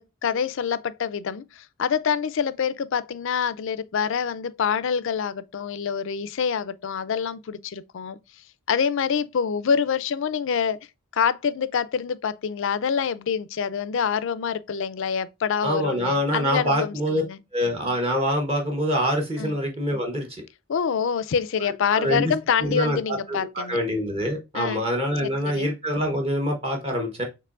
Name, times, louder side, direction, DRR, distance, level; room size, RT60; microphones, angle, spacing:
voice 1, 0.0-8.2 8.7-10.8 11.1-17.4 19.4-19.5 20.7-23.8 24.5-24.8 25.2-25.7, left 7 dB, 60° left, 0.4 m, -26 dB
voice 2, 15.6-17.2 17.5-20.4 21.9-22.3 22.6-27.3, equal, 30° right, 1.0 m, -25 dB
6.7 x 3.0 x 2.4 m
head